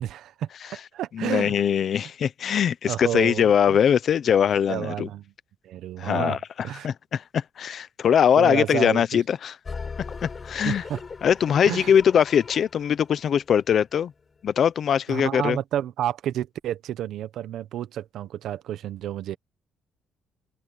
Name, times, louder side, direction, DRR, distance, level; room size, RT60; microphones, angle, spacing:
voice 1, 0.0-1.5 2.9-3.8 4.7-5.2 5.6-6.4 6.6-6.9 8.4-9.0 10.6-11.0 11.7-11.9 15.1-19.4, right 11 dB, 70° right, 1.1 m, -30 dB
voice 2, 1.1-5.1 6.0-9.6 10.2-10.8 11.2-14.1 14.4-15.6, left 8 dB, 45° left, 0.8 m, -22 dB
sound 1, 9.7-14.0, left 5 dB, 25° left, 6.8 m, -39 dB
open air
cardioid pair, 140°, 0 cm